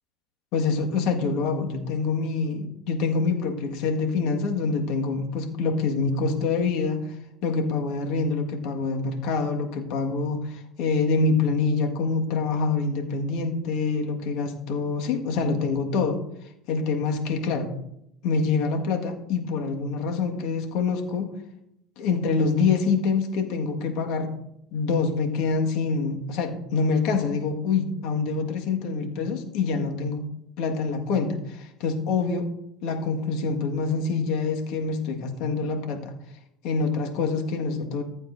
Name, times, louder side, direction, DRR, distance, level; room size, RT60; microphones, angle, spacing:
voice 1, 0.5-7.1 7.4-16.2 16.7-17.7 18.2-21.3 22.0-24.3 24.7-30.3 30.6-32.5 32.8-36.1 36.6-38.0, left 4 dB, 65° left, 3 dB, 1.8 m, -26 dB
15.0 x 8.2 x 2.7 m, 0.82 s
hypercardioid pair, 90°, 0 cm